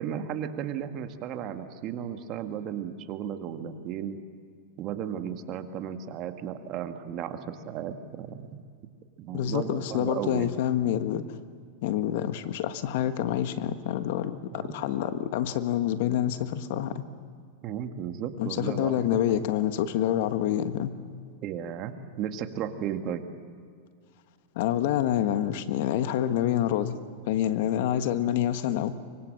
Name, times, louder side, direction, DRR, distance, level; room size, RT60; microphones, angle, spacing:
voice 1, 0.0-4.2 4.8-8.6 9.2-10.5 14.5-14.8 17.6-19.4 21.4-23.3, right 9 dB, 45° right, 7 dB, 1.9 m, -35 dB
voice 2, 9.3-11.2 11.8-17.0 18.4-21.0 24.5-27.0 27.3-28.9, left 11 dB, 65° left, 10 dB, 1.4 m, -27 dB
24.5 x 24.0 x 7.7 m, 2.2 s
hypercardioid pair, 110°, 0 cm